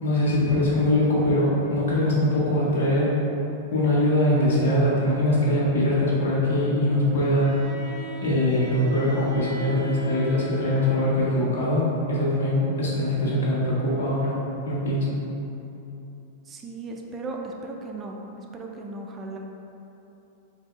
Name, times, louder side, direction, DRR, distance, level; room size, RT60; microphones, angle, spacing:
voice 1, 0.0-3.2 3.7-7.6 8.2-14.4 14.6-15.1, left 1 dB, 75° left, -6 dB, 1.3 m, -22 dB
Bowed string instrument, 7.1-11.4, equal, 45° left, 1.0 m, -39 dB
voice 2, 16.5-18.2 18.5-19.4, right 3 dB, 25° right, 1 dB, 0.4 m, -36 dB
3.8 x 2.7 x 4.4 m, 2.9 s
hypercardioid pair, 130°, 0 cm